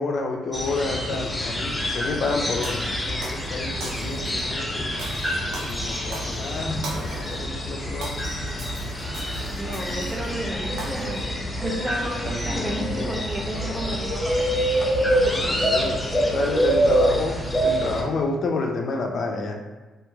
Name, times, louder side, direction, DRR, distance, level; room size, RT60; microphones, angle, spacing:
voice 1, 0.0-5.0 5.6-8.3 15.2-16.0 16.3-19.6, left 3 dB, 55° left, 2 dB, 0.5 m, -29 dB
sound 1, 0.5-18.0, equal, 15° left, 0.6 m, -26 dB
Shatter, 2.6-3.5 3.8-4.4 5.0-7.4 7.8-10.3 10.8-11.2, right 2 dB, 90° right, 0.7 m, -39 dB
voice 2, 9.6-11.2 11.5-14.8, right 1 dB, 35° right, 0 dB, 0.5 m, -32 dB
3.0 x 2.7 x 2.3 m, 1.2 s
cardioid pair, 90°, 0 cm